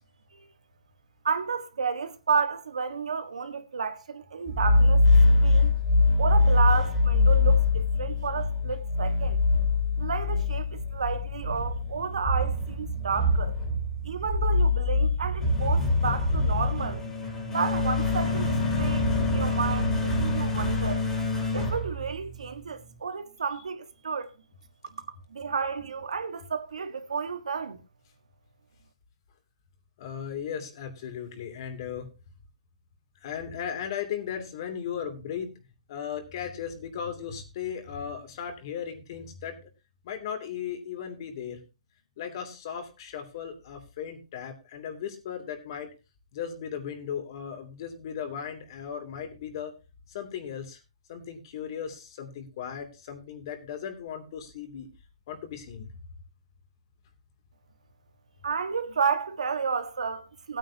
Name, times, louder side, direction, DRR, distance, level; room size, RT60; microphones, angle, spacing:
voice 1, 1.2-5.0 5.4-5.7 6.2-9.4 10.0-13.5 14.0-17.0 17.5-21.0 21.5-24.3 24.9-25.0 25.3-27.8 58.4-60.6, right 5 dB, 85° right, 1.5 m, -31 dB
sound 1, 4.5-22.6, left 3 dB, 10° left, 3.2 m, -24 dB
voice 2, 30.0-32.1 33.2-35.5 35.9-39.7 40.0-41.6 42.2-45.9 46.3-49.7 50.1-50.8 51.1-54.9 55.3-55.9, left 8 dB, 45° left, 2.8 m, -36 dB
16.5 x 9.2 x 2.8 m
hypercardioid pair, 155°, 4 cm